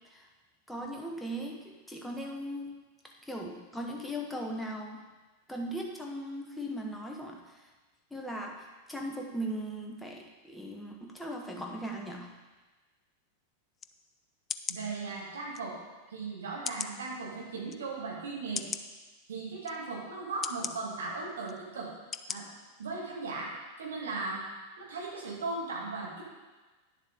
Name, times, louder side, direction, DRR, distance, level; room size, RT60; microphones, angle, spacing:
voice 1, 0.7-2.8 3.0-5.0 5.5-7.7 8.1-12.4, equal, 5° left, 1 dB, 0.8 m, -38 dB
sound 1, 13.8-13.9 14.5-14.8 15.5-15.6 16.6-17.0 17.7-17.8 18.5-18.8 19.6-19.8 20.4-20.7 21.5-21.6 22.1-22.4 22.8-22.9, left 7 dB, 25° left, 0.4 m, -36 dB
voice 2, 14.7-15.8 16.1-18.7 19.3-21.9 22.3-22.5 22.8-24.5 24.8-26.2, right 3 dB, 65° right, -3 dB, 2.2 m, -37 dB
10.0 x 7.3 x 3.6 m, 1.3 s
figure-of-eight pair, 90°, 0 cm